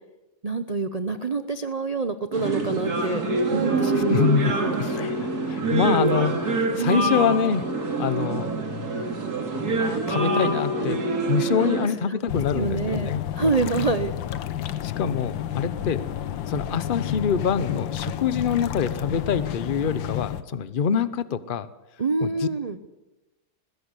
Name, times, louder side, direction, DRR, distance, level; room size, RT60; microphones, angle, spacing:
voice 1, 0.4-3.2 3.5-4.2 4.6-4.8 6.8-7.2 12.1-14.1 20.9-21.1 22.0-22.8, right 4 dB, 70° right, 9 dB, 0.3 m, -26 dB
sound 1, 2.3-11.9, right 2 dB, 55° right, 3.0 m, -25 dB
voice 2, 4.1-4.5 4.8-7.6 8.0-8.5 9.8-13.2 14.8-16.1 16.5-21.7 22.2-22.5, left 6 dB, 45° left, 14 dB, 0.6 m, -25 dB
sound 2, 12.3-20.4, left 11 dB, 80° left, 1.6 m, -30 dB
20.0 x 16.0 x 8.2 m, 1.0 s
omnidirectional pair, 2.1 m